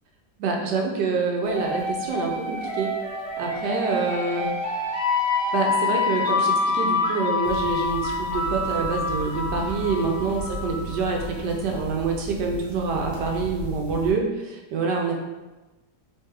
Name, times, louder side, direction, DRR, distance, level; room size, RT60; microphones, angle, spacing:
voice 1, 0.4-2.9 3.4-4.5 5.5-15.1, right 4 dB, 85° right, 0 dB, 1.4 m, -26 dB
sound 1, 1.5-11.2, left 3 dB, 20° right, 0.9 m, -27 dB
sound 2, 7.4-14.1, equal, 50° right, 1.3 m, -36 dB
3.7 x 3.5 x 3.3 m, 1.1 s
omnidirectional pair, 1.7 m